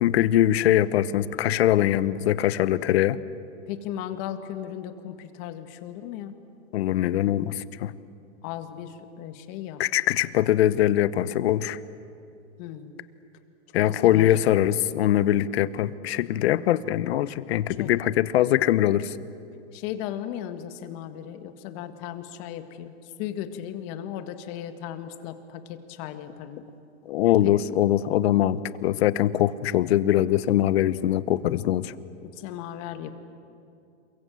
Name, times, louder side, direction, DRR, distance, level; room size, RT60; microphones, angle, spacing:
voice 1, 0.0-3.2 6.7-7.9 9.8-11.8 13.7-19.1 27.1-31.9, left 12 dB, 60° left, 16 dB, 1.1 m, -22 dB
voice 2, 3.7-6.4 8.4-9.8 12.6-12.9 13.9-14.3 17.8-17.9 19.7-22.9 23.2-26.6 27.4-27.5 32.2-33.1, left 10 dB, 40° left, 8 dB, 1.9 m, -36 dB
28.0 x 23.5 x 7.7 m, 2.6 s
hypercardioid pair, 145°, 35 cm